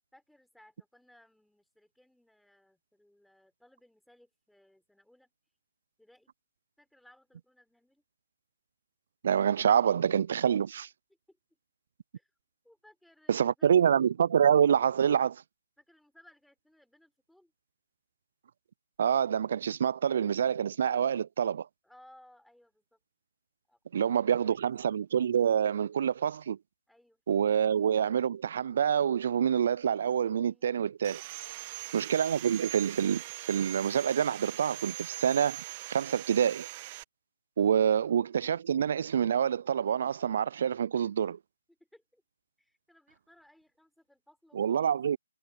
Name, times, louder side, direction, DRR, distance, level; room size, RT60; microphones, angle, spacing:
voice 1, 0.1-5.3 6.0-6.3 6.8-8.0 11.3-11.4 12.1-12.3 12.6-13.7 15.8-17.5 21.8-23.0 23.7-23.8 24.2-24.7 26.9-27.2 30.4-30.7 31.5-31.9 41.7-42.2 42.6-45.0, left 1 dB, ahead, 4.8 m, -62 dB
voice 2, 9.2-10.9 13.3-15.4 19.0-21.7 23.9-26.6 27.3-31.2 31.9-33.2 33.5-36.7 37.6-41.4 44.5-45.2, right 8 dB, 50° right, 0.3 m, -27 dB
Sawing, 31.0-37.0, right 18 dB, 30° right, 1.4 m, -42 dB
figure-of-eight pair, 145°, 0 cm